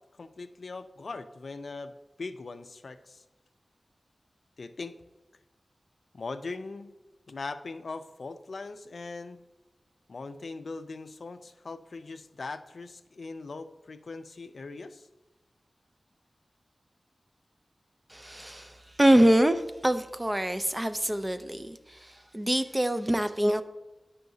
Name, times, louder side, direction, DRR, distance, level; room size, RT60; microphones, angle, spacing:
voice 1, 0.2-1.9 2.2-3.2 4.6-5.0 6.1-6.9 7.3-9.4 10.1-15.1, left 3 dB, 70° left, 9 dB, 0.3 m, -40 dB
voice 2, 18.1-23.6, right 1 dB, 20° right, 10 dB, 0.3 m, -25 dB
9.0 x 5.6 x 2.7 m, 1.1 s
wide cardioid pair, 90°, 0 cm